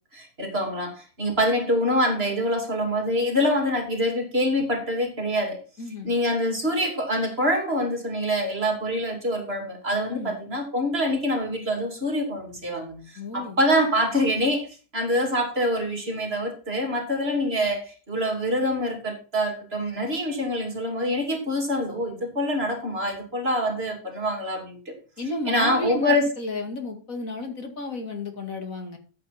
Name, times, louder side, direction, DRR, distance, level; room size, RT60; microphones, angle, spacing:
voice 1, 0.1-5.6 6.0-24.9 25.4-26.3, equal, 40° right, 3 dB, 3.2 m, -25 dB
voice 2, 5.8-6.1 10.1-10.3 13.2-13.6 25.2-29.0, left 2 dB, 60° left, 5 dB, 2.6 m, -32 dB
14.0 x 7.8 x 4.3 m, 0.35 s
omnidirectional pair, 1.6 m